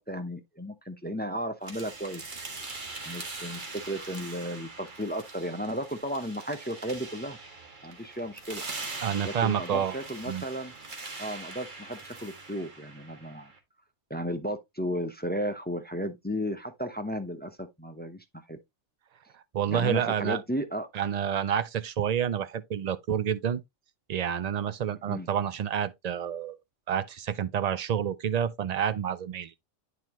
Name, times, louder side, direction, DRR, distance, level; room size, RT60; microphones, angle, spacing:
voice 1, 0.1-2.2 3.0-7.4 7.8-8.6 9.2-10.7 11.2-13.5 14.1-18.6 19.7-20.9 25.1-25.3, equal, 10° left, 0.6 m, -34 dB
sound 1, 1.6-13.6, right 3 dB, 40° right, 1.7 m, -42 dB
voice 2, 9.0-9.9 10.3-10.4 19.3-20.4 20.9-23.6 24.1-26.6 26.9-29.5, right 9 dB, 90° right, 0.3 m, -29 dB
9.1 x 4.7 x 3.0 m
omnidirectional pair, 1.3 m